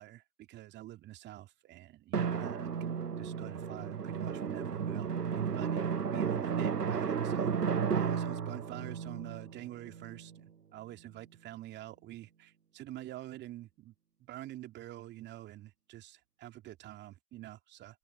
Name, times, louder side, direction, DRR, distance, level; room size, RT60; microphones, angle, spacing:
voice 1, 0.0-7.5 7.9-13.9 14.2-18.0, right 15 dB, 20° right, 2.5 m, -47 dB
Drum, 2.1-10.4, right 7 dB, 80° right, 1.0 m, -33 dB
figure-of-eight pair, 115°, 47 cm